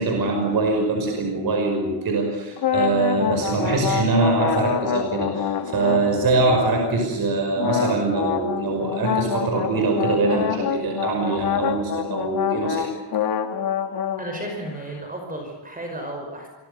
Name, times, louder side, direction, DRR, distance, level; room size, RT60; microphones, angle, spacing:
voice 1, 0.0-12.9, right 3 dB, 50° right, 2 dB, 5.6 m, -23 dB
sound 1, 2.6-7.0 7.6-14.8, left 8 dB, 60° left, 2.4 m, -26 dB
voice 2, 14.2-16.5, right 1 dB, 20° right, 2 dB, 5.5 m, -33 dB
28.5 x 24.0 x 6.8 m, 1.1 s
cardioid pair, 155°, 44 cm